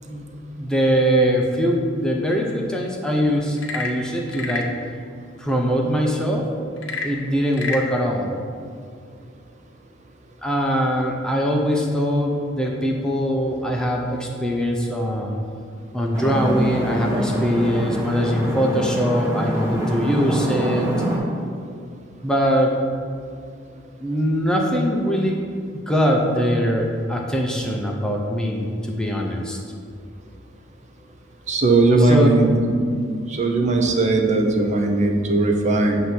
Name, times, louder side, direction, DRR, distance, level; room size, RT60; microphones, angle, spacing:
voice 1, 0.6-4.7 5.4-6.5 7.0-8.3 10.4-15.3 15.9-20.9 22.2-22.7 24.0-29.6 32.1-32.4, equal, 5° left, -1 dB, 0.5 m, -22 dB
Frog / Percussion / Wood, 3.5-4.8 6.8-7.9, left 3 dB, 80° left, 0.7 m, -29 dB
sound 1, 16.1-21.2, equal, 15° right, 1.5 m, -25 dB
voice 2, 31.5-32.8 33.3-36.0, right 2 dB, 40° right, 2 dB, 0.6 m, -18 dB
7.9 x 2.7 x 5.9 m, 2.3 s
head